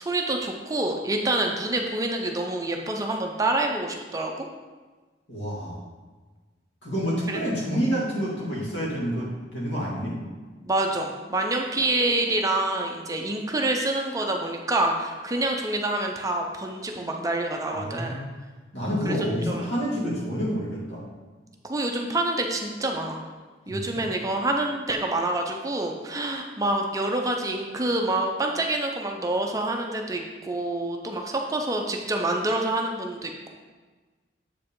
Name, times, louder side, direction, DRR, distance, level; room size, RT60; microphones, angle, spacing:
voice 1, 0.0-4.5 7.3-7.4 10.6-18.2 19.0-19.2 19.5-19.6 21.6-23.3 23.7-33.5, right 2 dB, 20° right, 2 dB, 0.5 m, -27 dB
voice 2, 5.3-5.8 6.8-10.2 17.7-18.3 18.7-21.0 23.7-24.1, equal, 75° left, -5 dB, 2.1 m, -28 dB
7.4 x 4.8 x 3.7 m, 1.3 s
head